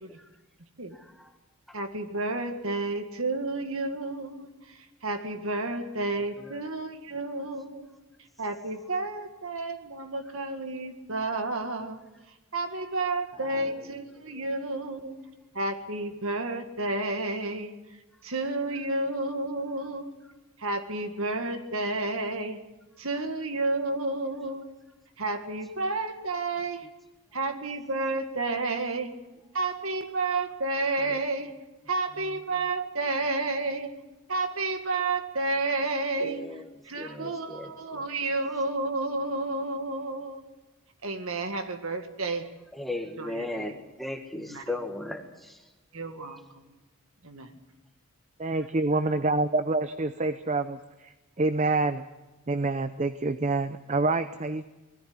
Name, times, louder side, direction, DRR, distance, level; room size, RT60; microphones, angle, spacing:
voice 1, 0.9-1.3 6.4-6.6 13.5-13.7 31.0-31.2 36.2-36.6 37.0-38.1 42.7-45.6 48.5-48.6, left 2 dB, ahead, 2 dB, 1.8 m, -37 dB
voice 2, 1.7-7.9 8.4-12.0 12.3-15.2 15.5-20.2 20.6-22.6 23.0-24.7 25.2-26.9 27.3-29.1 29.5-31.5 31.9-33.9 34.3-36.4 36.8-40.4 41.0-42.5 43.2-43.7 44.3-44.8 45.9-46.7 47.2-47.5, right 2 dB, 70° right, 6 dB, 1.9 m, -31 dB
voice 3, 48.4-52.0 52.5-54.7, right 3 dB, 30° right, 11 dB, 0.6 m, -27 dB
20.0 x 14.0 x 9.6 m, 1.1 s
head